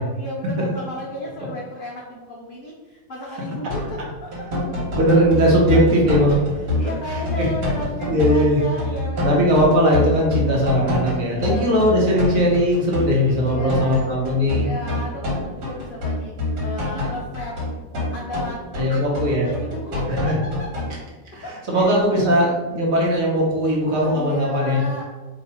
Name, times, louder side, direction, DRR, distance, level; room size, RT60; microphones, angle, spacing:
voice 1, 0.0-3.9 4.2-4.5 5.7-5.8 6.8-9.5 11.3-12.2 12.9-14.1 14.4-17.6 18.1-20.9 21.4-22.5 23.9-25.0, left 1 dB, 70° left, -4 dB, 0.5 m, -34 dB
sound 1, 3.7-4.0 4.3-20.9, left 2 dB, 85° right, 1.8 m, -26 dB
voice 2, 5.0-6.4 7.4-7.5 8.1-8.6 9.2-14.6 18.7-19.5 20.1-20.3 21.3-24.8, equal, 60° right, -3 dB, 1.3 m, -19 dB
2.9 x 2.8 x 4.2 m, 1.2 s
omnidirectional pair, 1.8 m